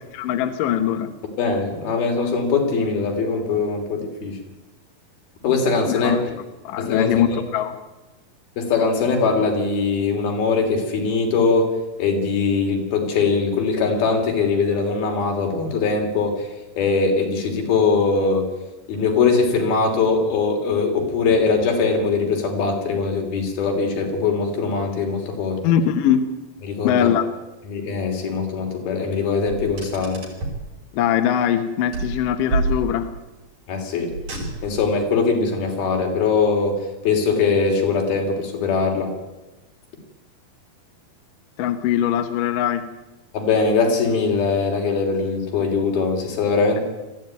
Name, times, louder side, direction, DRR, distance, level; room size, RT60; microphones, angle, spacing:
voice 1, 0.1-1.1 5.9-6.2 6.6-7.8 25.6-26.2 26.8-27.3 30.9-33.1 41.6-42.8, left 10 dB, 70° left, 7 dB, 2.6 m, -21 dB
voice 2, 1.4-4.4 5.4-6.3 6.8-7.4 8.6-18.5 18.9-25.6 26.6-27.1 27.6-30.2 33.7-34.2 34.6-39.1 43.3-46.8, left 4 dB, 90° left, 3 dB, 5.0 m, -21 dB
Car, 29.5-30.7 31.9-33.2 34.1-34.9, right 3 dB, 60° right, 6.7 m, -28 dB
21.0 x 14.5 x 9.4 m, 1.1 s
omnidirectional pair, 4.2 m